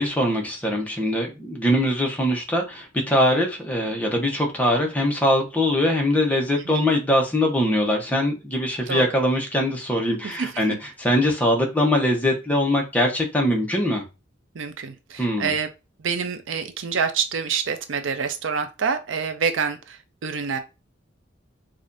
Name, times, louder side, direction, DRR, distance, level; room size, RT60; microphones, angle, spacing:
voice 1, 0.0-14.1 15.2-15.5, left 1 dB, 10° left, 0 dB, 0.9 m, -22 dB
voice 2, 10.2-10.6 14.5-15.7 16.0-20.6, right 6 dB, 75° right, 9 dB, 0.5 m, -27 dB
4.9 x 2.4 x 2.6 m, 0.27 s
head